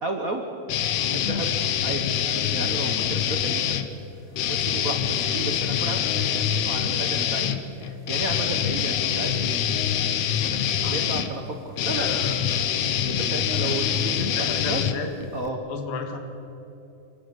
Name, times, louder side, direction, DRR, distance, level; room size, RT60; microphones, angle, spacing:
voice 1, 0.0-0.4 1.1-1.5 1.8-3.8 4.5-9.6 10.3-12.1 13.0-14.8 15.3-15.6, right 2 dB, 90° right, 3 dB, 0.7 m, -33 dB
sound 1, 0.7-3.9 4.3-15.5, left 9 dB, 70° left, 1.6 m, -25 dB
voice 2, 1.0-1.5 10.8-11.3 11.9-12.7 13.6-15.1 15.7-16.2, left 4 dB, 85° left, 5 dB, 3.6 m, -34 dB
27.0 x 12.5 x 8.5 m, 2.9 s
omnidirectional pair, 4.0 m